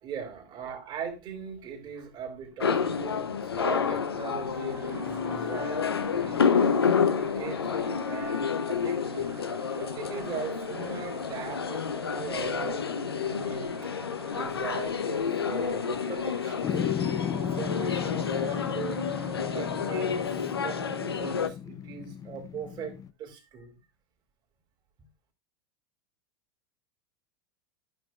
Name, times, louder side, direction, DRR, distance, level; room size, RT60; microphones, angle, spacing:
voice 1, 0.0-6.8 7.2-9.4 9.8-12.8 13.1-13.7 14.2-16.8 17.3-19.0 19.5-23.8, right 6 dB, 35° right, 2.7 m, -40 dB
sound 1, 2.6-21.5, left 6 dB, 85° left, 0.8 m, -29 dB
Crowd, 4.3-20.5, right 5 dB, 20° right, 0.8 m, -48 dB
sound 2, 16.6-23.1, left 9 dB, 30° left, 0.6 m, -35 dB
11.5 x 6.1 x 2.4 m
hypercardioid pair, 90°, 13 cm